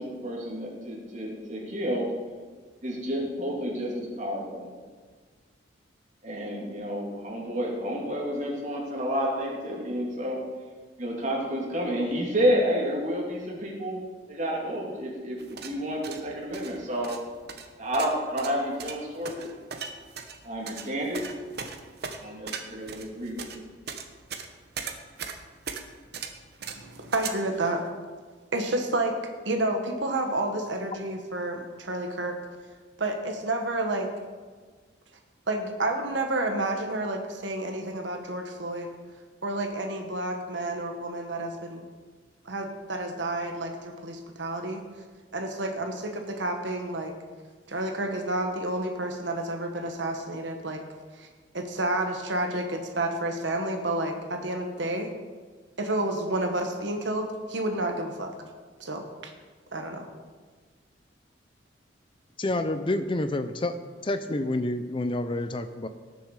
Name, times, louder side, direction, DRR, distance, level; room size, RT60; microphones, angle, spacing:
voice 1, 0.0-2.1 2.8-4.7 6.2-10.4 11.0-14.0 14.3-17.1 17.8-19.5 20.4-21.2 22.2-23.5, equal, 40° right, -2 dB, 3.0 m, -30 dB
sound 1, 15.4-27.3, right 6 dB, 60° right, 1.1 m, -39 dB
voice 2, 26.6-27.8 28.5-29.1 29.4-32.4 33.0-34.1 35.5-38.9 39.4-41.8 42.4-44.8 45.3-47.1 47.7-50.8 51.1-51.3 51.5-55.1 55.8-58.3 58.8-59.3 59.7-60.1, right 2 dB, 75° right, 4 dB, 1.3 m, -30 dB
voice 3, 62.4-63.7 64.0-65.9, left 2 dB, 30° left, 10 dB, 0.5 m, -28 dB
19.0 x 6.9 x 4.9 m, 1.5 s
head